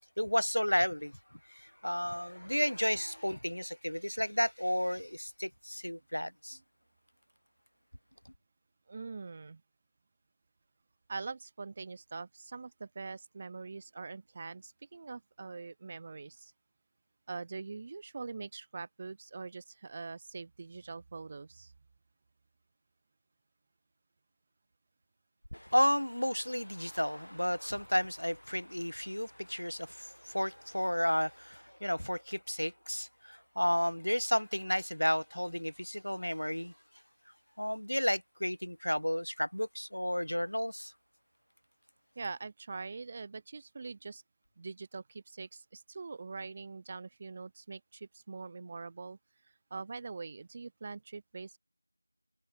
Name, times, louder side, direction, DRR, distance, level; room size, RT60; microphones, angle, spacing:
voice 1, 0.2-1.1 1.5-6.6 25.5-36.7 37.6-40.9, equal, 75° left, 6.4 m, -32 dB
voice 2, 8.9-9.6 11.1-16.5 17.3-21.7 42.2-44.2 44.6-49.2 49.7-51.6, right 4 dB, 10° right, 3.7 m, -43 dB
figure-of-eight pair, 175°, 0 cm